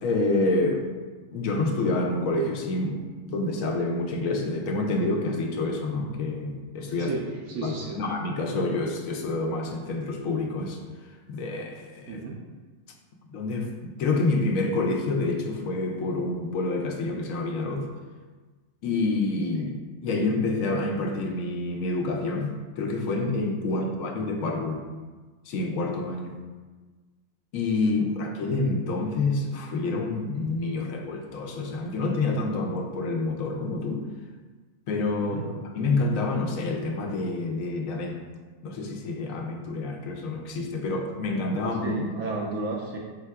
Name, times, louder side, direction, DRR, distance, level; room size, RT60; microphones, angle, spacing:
voice 1, 0.0-0.9 1.3-7.1 7.6-12.2 13.3-17.9 18.8-19.7 20.0-24.8 25.5-26.4 27.5-34.1 34.9-38.2 38.6-42.0, left 2 dB, 85° left, 2 dB, 1.0 m, -28 dB
voice 2, 7.0-8.0 12.1-12.4 19.6-19.7 23.7-23.9 27.8-28.1 35.2-35.5 41.8-43.0, right 3 dB, 80° right, -2 dB, 1.0 m, -33 dB
4.6 x 4.1 x 2.2 m, 1.4 s
omnidirectional pair, 1.4 m